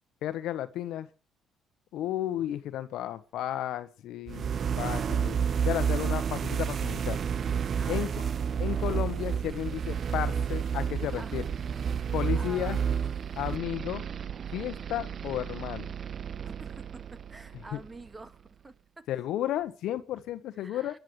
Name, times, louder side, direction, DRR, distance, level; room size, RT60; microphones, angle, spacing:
voice 1, 0.2-1.1 1.9-4.5 4.7-7.2 7.9-8.1 8.6-11.4 12.1-12.8 13.4-14.0 14.5-15.9 17.7-17.8 19.1-21.0, left 12 dB, 70° left, 12 dB, 1.2 m, -33 dB
sound 1, 4.3-18.1, right 7 dB, 55° right, 0.7 m, -31 dB
voice 2, 7.8-8.2 11.2-11.4 12.3-12.8 16.4-19.0 20.6-21.0, right 2 dB, 25° right, 10 dB, 2.0 m, -47 dB
28.5 x 10.5 x 3.3 m, 0.34 s
hypercardioid pair, 55°, 0 cm